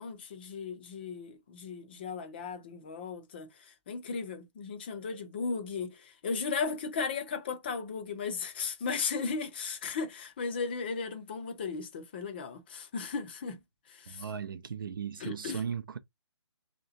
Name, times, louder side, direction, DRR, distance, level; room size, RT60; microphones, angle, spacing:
voice 1, 0.0-13.6 13.9-14.3 15.2-15.6, left 5 dB, 20° left, 0.5 m, -36 dB
voice 2, 14.1-16.0, right 7 dB, 45° right, 0.5 m, -37 dB
3.2 x 2.9 x 3.8 m
hypercardioid pair, 160°, 15 cm